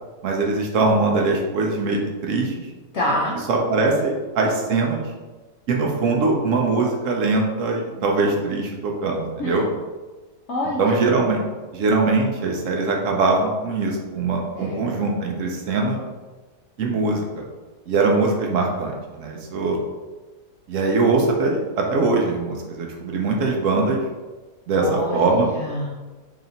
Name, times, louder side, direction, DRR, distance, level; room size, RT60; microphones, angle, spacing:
voice 1, 0.2-2.7 3.5-5.1 5.7-9.6 10.8-11.4 11.7-16.0 16.8-17.4 17.9-19.8 20.7-24.0 24.7-24.8 25.1-25.5, right 3 dB, 70° right, 0 dB, 0.7 m, -22 dB
voice 2, 2.9-3.4 9.4-9.7 10.5-11.0 14.6-14.9 24.8-25.9, left 1 dB, 70° left, -4 dB, 0.6 m, -27 dB
3.1 x 2.8 x 3.9 m, 1.3 s
omnidirectional pair, 1.8 m